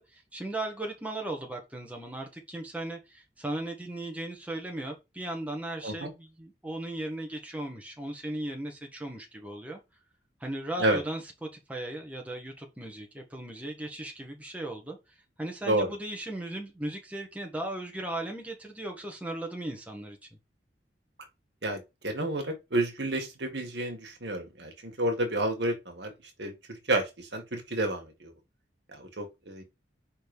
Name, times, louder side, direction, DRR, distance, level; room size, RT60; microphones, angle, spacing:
voice 1, 0.0-9.8 10.4-15.0 15.4-20.2, right 1 dB, 10° right, 1.6 m, -37 dB
voice 2, 21.6-26.1 26.4-28.3 28.9-29.6, right 1 dB, 75° right, 1.9 m, -30 dB
5.1 x 4.4 x 5.4 m
head